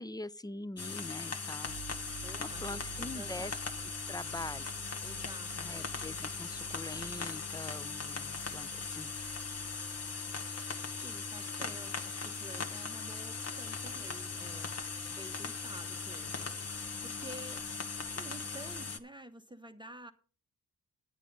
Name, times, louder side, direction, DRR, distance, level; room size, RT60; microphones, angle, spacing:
voice 1, 0.0-1.8 2.1-3.5 4.1-4.7 5.6-9.1, left 2 dB, 10° left, 0.5 m, -43 dB
sound 1, 0.8-19.0, left 4 dB, 45° left, 1.2 m, -39 dB
sound 2, 1.6-10.7 10.9-11.1, right 11 dB, 40° right, 0.6 m, -53 dB
voice 2, 2.2-2.7 3.1-3.5 5.0-5.8 10.9-14.7 15.1-16.5 17.0-17.7 18.2-20.1, right 1 dB, 15° right, 0.9 m, -50 dB
9.8 x 8.3 x 5.2 m
cardioid pair, 60°, 34 cm